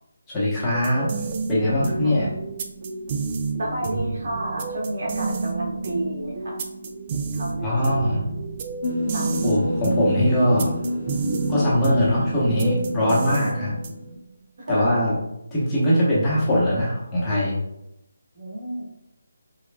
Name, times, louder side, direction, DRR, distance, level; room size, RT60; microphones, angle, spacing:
voice 1, 0.3-1.1 1.5-2.3 7.6-8.2 9.4-10.7 11.5-13.7 14.7-15.1 15.5-17.6, left 1 dB, 10° left, -8 dB, 0.9 m, -21 dB
sound 1, 0.7-14.2, right 4 dB, 30° right, 0.3 m, -30 dB
voice 2, 2.0-2.4 3.6-6.6 7.3-8.3 9.1-9.3 13.4-13.7 14.6-15.1 18.4-18.8, right 1 dB, 55° right, -3 dB, 1.2 m, -31 dB
sound 2, 8.8-14.2, equal, 45° left, 0.7 m, -29 dB
5.1 x 2.3 x 2.2 m, 0.83 s
figure-of-eight pair, 165°, 0 cm